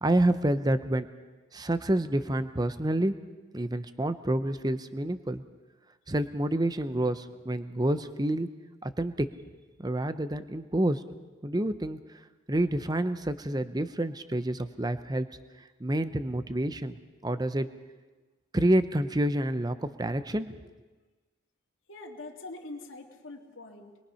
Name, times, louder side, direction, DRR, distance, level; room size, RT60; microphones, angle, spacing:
voice 1, 0.0-1.1 1.5-3.1 3.5-5.4 6.1-8.5 8.8-9.3 9.8-11.0 11.4-12.0 12.5-15.3 15.8-17.0 17.2-17.7 18.5-20.5, right 1 dB, 20° right, 11 dB, 0.7 m, -28 dB
voice 2, 21.9-24.0, left 2 dB, 75° left, 0 dB, 2.4 m, -43 dB
26.5 x 22.0 x 5.7 m, 1.3 s
head